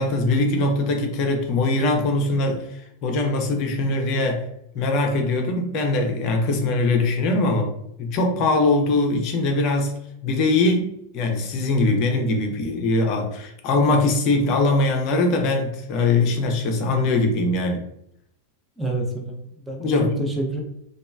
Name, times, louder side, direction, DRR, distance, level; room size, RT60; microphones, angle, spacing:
voice 1, 0.0-4.5 4.7-7.7 8.0-10.0 10.2-17.8 19.8-20.2, left 2 dB, 40° left, 3 dB, 0.5 m, -22 dB
voice 2, 18.8-20.6, right 2 dB, 5° right, 0 dB, 0.5 m, -28 dB
3.0 x 2.3 x 2.3 m, 0.74 s
figure-of-eight pair, 90°, 0 cm